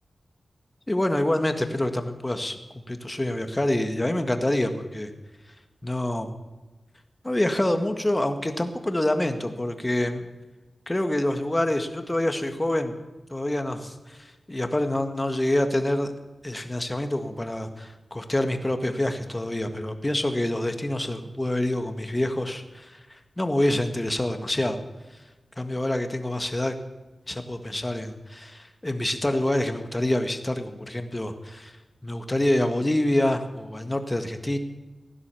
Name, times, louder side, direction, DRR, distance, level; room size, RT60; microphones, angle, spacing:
voice 1, 0.9-2.6 2.9-5.1 5.8-6.3 7.2-10.2 10.9-12.9 13.3-16.1 16.4-23.0 23.4-24.8 25.6-26.8 27.3-31.8 32.0-34.6, left 1 dB, 20° left, 7 dB, 1.7 m, -26 dB
16.0 x 11.5 x 6.9 m, 1.2 s
wide cardioid pair, 65°, 0 cm